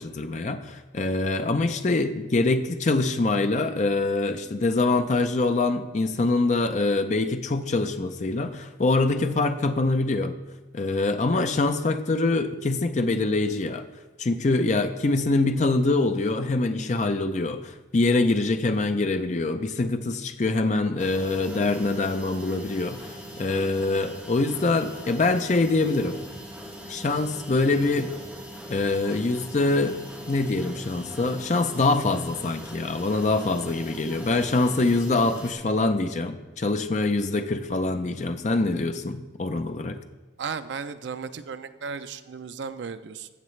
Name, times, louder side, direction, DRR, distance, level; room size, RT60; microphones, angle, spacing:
voice 1, 0.0-10.3 10.7-13.8 14.2-26.2 26.9-28.1 28.7-30.0 30.3-40.0, left 2 dB, 40° left, 8 dB, 0.5 m, -24 dB
sound 1, 21.0-35.5, equal, 5° right, 1.5 m, -41 dB
voice 2, 40.4-43.3, right 5 dB, 65° right, 11 dB, 0.4 m, -35 dB
14.5 x 6.8 x 3.2 m, 1.2 s
head